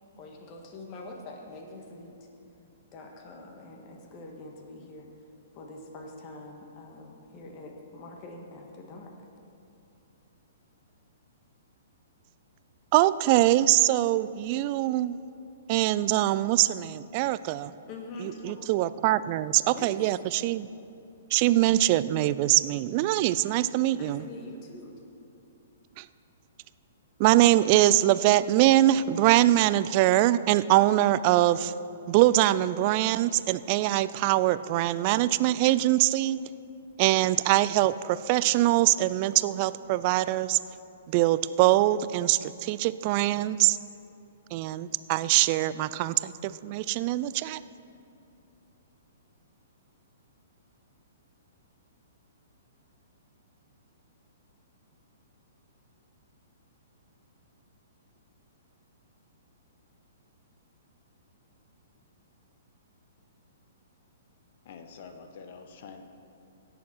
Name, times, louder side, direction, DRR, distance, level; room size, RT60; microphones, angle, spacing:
voice 1, 0.2-2.2 2.9-5.1 5.5-9.1 17.9-18.6 19.8-20.0 24.0-24.9, left 2 dB, 35° left, 2 dB, 1.8 m, -44 dB
voice 2, 12.9-15.2 15.7-17.7 18.2-20.7 21.3-24.2 26.0-26.1 27.2-31.7 32.1-36.4 37.0-40.6 41.1-43.8 44.5-47.6, right 15 dB, 40° right, 16 dB, 0.3 m, -23 dB
voice 3, 64.6-66.0, left 5 dB, 50° left, 6 dB, 1.0 m, -46 dB
17.0 x 7.1 x 4.6 m, 2.7 s
figure-of-eight pair, 120°, 0 cm